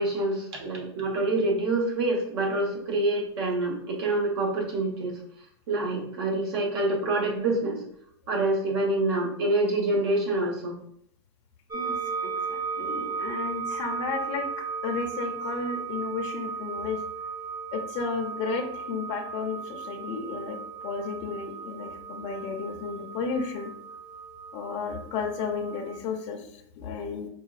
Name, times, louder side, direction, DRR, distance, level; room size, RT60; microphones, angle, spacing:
voice 1, 0.0-5.1 5.7-7.8 8.3-10.8, right 2 dB, 60° right, -1 dB, 1.3 m, -26 dB
voice 2, 11.7-14.4 14.8-17.0 17.7-20.6 20.8-23.7 24.5-27.3, left 5 dB, 40° left, 0 dB, 0.6 m, -33 dB
sound 1, 11.7-26.0, right 6 dB, 25° right, 0.8 m, -36 dB
4.7 x 2.5 x 2.5 m, 0.68 s
hypercardioid pair, 130°, 15 cm